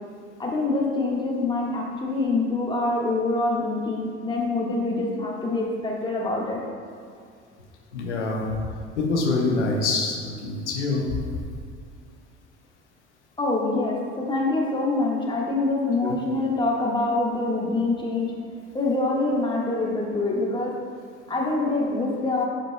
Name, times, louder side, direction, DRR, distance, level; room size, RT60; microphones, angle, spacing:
voice 1, 0.4-6.6 13.4-18.3 18.7-20.7 21.3-22.4, left 2 dB, 15° left, -3 dB, 1.5 m, -25 dB
voice 2, 7.9-8.5 9.0-11.1 16.0-16.1, left 3 dB, 80° left, -2 dB, 1.0 m, -25 dB
11.5 x 5.1 x 2.2 m, 2.2 s
figure-of-eight pair, 60°, 34 cm